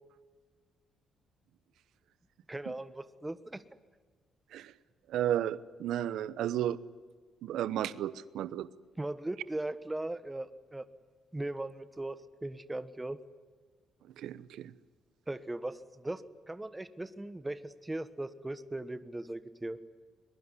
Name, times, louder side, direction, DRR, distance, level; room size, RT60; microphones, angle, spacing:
voice 1, 2.5-3.6 9.0-10.8 11.3-13.2 15.3-19.8, right 2 dB, 10° right, 12 dB, 1.2 m, -38 dB
voice 2, 5.1-6.8 7.4-8.7 14.2-14.7, right 11 dB, 85° right, 17 dB, 0.9 m, -33 dB
22.5 x 22.0 x 9.9 m, 1.5 s
cardioid pair, 145°, 0 cm